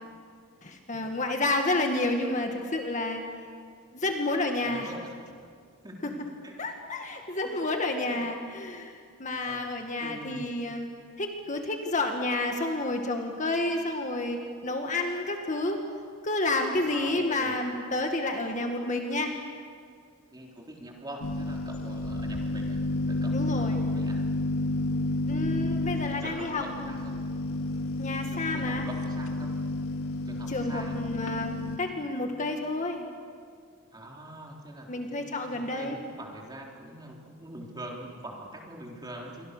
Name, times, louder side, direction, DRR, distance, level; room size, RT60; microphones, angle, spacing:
voice 1, 0.6-3.2 3.9-4.9 6.0-6.1 6.6-8.9 9.2-10.9 11.2-15.8 16.2-19.3 23.3-23.8 25.3-26.9 28.0-28.9 30.5-33.1 34.9-36.0, left 2 dB, 35° left, 4 dB, 1.9 m, -30 dB
voice 2, 4.6-5.1 5.8-6.7 7.2-7.7 8.0-8.3 9.4-9.7 10.0-10.5 16.8-17.6 18.2-18.3 20.3-22.8 23.1-24.2 25.3-25.9 26.2-27.2 28.3-29.6 30.3-31.0 33.9-39.4, right 1 dB, 20° right, -1 dB, 3.7 m, -44 dB
sound 1, 21.2-31.8, left 2 dB, 85° left, 2.0 m, -31 dB
29.0 x 24.0 x 6.7 m, 2.1 s
head